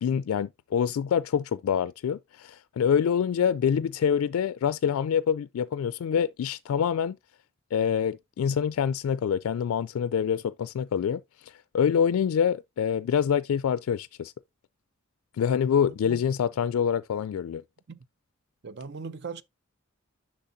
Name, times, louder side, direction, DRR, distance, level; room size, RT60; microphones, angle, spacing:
voice 1, 0.0-7.2 7.7-14.3 15.4-17.6, left 7 dB, 85° left, 0.3 m, -26 dB
voice 2, 15.9-16.2 17.9-18.0 18.6-19.4, right 5 dB, 55° right, 0.6 m, -39 dB
10.0 x 6.3 x 2.6 m
head